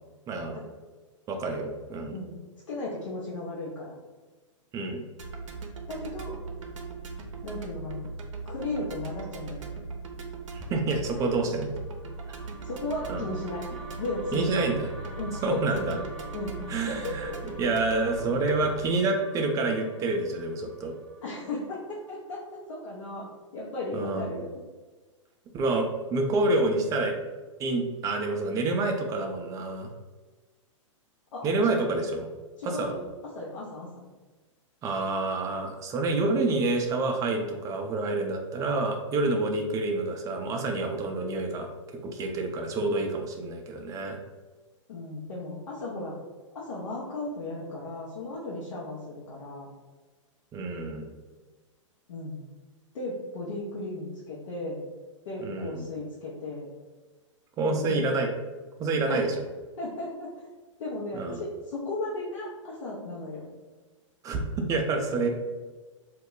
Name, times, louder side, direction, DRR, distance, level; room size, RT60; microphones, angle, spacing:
voice 1, 0.3-0.6 1.3-2.2 4.7-5.0 10.5-11.8 12.3-12.4 13.1-13.3 14.3-14.9 15.4-16.0 16.7-20.9 23.9-24.4 25.5-27.2 27.6-29.9 31.4-32.3 32.6-32.9 34.8-41.7 42.0-44.2 50.5-51.1 55.4-55.9 57.6-58.3 58.8-59.3 61.1-61.4 64.2-65.3, right 2 dB, 20° right, 3 dB, 0.4 m, -28 dB
voice 2, 2.7-3.9 5.9-6.3 7.4-8.1 8.4-9.7 11.1-11.2 12.6-14.5 15.2-16.0 16.3-16.6 16.9-17.5 21.2-24.5 31.3-31.8 32.6-33.0 33.3-33.9 44.9-46.1 46.5-49.7 52.1-52.4 52.9-54.9 55.3-56.7 57.6-58.0 59.1-59.3 59.8-60.3 60.8-63.5, left 2 dB, 70° left, -6 dB, 0.7 m, -35 dB
sound 1, 5.2-18.9, right 4 dB, 70° right, 0.5 m, -39 dB
sound 2, 11.7-22.0, right 1 dB, 10° left, 0.7 m, -46 dB
2.3 x 2.0 x 3.7 m, 1.3 s
hypercardioid pair, 120°, 17 cm